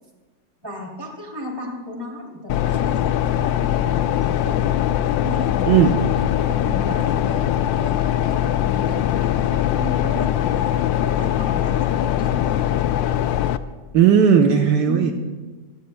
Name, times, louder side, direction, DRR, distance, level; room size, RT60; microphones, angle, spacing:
voice 1, 0.6-4.8 5.2-6.0 6.4-7.5 7.8-10.7 11.0-13.2 14.9-15.1, left 1 dB, 15° right, -1 dB, 2.7 m, -34 dB
sound 1, 2.5-13.6, left 11 dB, 85° left, 1.3 m, -21 dB
voice 2, 5.7-6.1 13.9-15.1, right 7 dB, 70° right, 4 dB, 1.4 m, -15 dB
25.0 x 16.5 x 2.2 m, 1.3 s
omnidirectional pair, 2.0 m